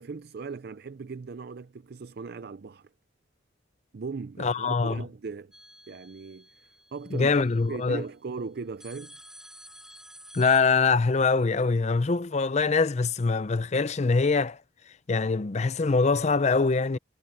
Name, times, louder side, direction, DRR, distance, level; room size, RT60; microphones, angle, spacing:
voice 1, 0.0-2.9 3.9-5.5 5.9-7.4 7.7-9.2, right 4 dB, 55° right, 0.5 m, -38 dB
voice 2, 4.4-5.0 7.1-8.0 10.3-14.6 15.1-17.0, left 4 dB, 40° left, 0.5 m, -24 dB
sound 1, 5.5-7.8 8.8-10.6, equal, 5° right, 1.9 m, -51 dB
head